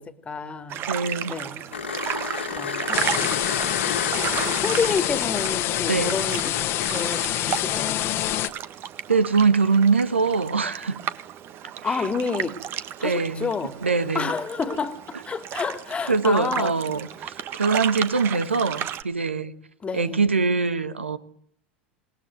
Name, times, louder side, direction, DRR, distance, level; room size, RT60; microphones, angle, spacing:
voice 1, 0.0-0.8 1.3-1.6 2.5-3.7 4.6-6.6 6.9-8.0 11.8-12.6 13.0-13.7 14.1-16.7 19.8-20.2, left 5 dB, 20° left, 2.3 m, -29 dB
sound 1, 0.7-19.0, right 10 dB, 35° right, 1.5 m, -34 dB
voice 2, 0.9-1.4 5.9-6.2 9.1-11.0 11.8-12.0 13.0-13.5 13.8-14.3 16.1-19.5 19.9-21.2, right 4 dB, 80° right, 1.4 m, -23 dB
sound 2, 1.7-7.3 9.9-10.0, left 6 dB, 75° left, 2.5 m, -32 dB
sound 3, 2.9-8.5, left 14 dB, 40° left, 1.7 m, -26 dB
27.5 x 20.0 x 9.5 m
figure-of-eight pair, 85°, 6 cm